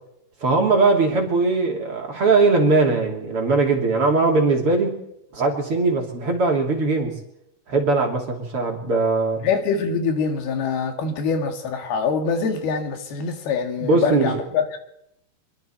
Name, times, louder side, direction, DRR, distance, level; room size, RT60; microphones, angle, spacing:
voice 1, 0.4-5.0 5.3-7.2 7.7-9.4 13.8-14.4, right 3 dB, 40° right, 1 dB, 3.5 m, -20 dB
voice 2, 9.4-14.8, left 5 dB, 75° left, 5 dB, 3.9 m, -24 dB
24.5 x 23.5 x 4.5 m, 0.79 s
omnidirectional pair, 4.5 m